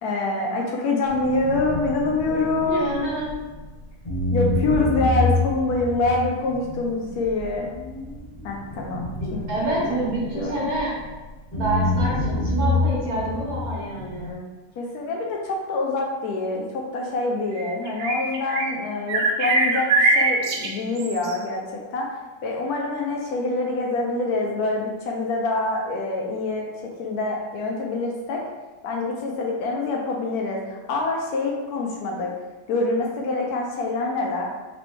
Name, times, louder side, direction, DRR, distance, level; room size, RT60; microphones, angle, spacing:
voice 1, 0.0-2.8 4.3-7.7 8.4-9.4 9.9-10.0 10.3-10.7 14.8-22.1 22.4-26.7 27.0-28.4 28.8-32.3 32.7-34.5, left 3 dB, 80° left, 0 dB, 1.1 m, -25 dB
sound 1, 1.1-3.7 4.0-11.1 11.5-14.3, left 2 dB, 30° left, 1.0 m, -27 dB
voice 2, 2.6-3.3 9.2-10.9 11.5-14.4, right 2 dB, 80° right, -8 dB, 2.0 m, -27 dB
sound 2, 17.5-18.8 19.1-21.4, right 3 dB, 65° right, 0.7 m, -22 dB
4.2 x 3.0 x 3.1 m, 1.2 s
omnidirectional pair, 1.6 m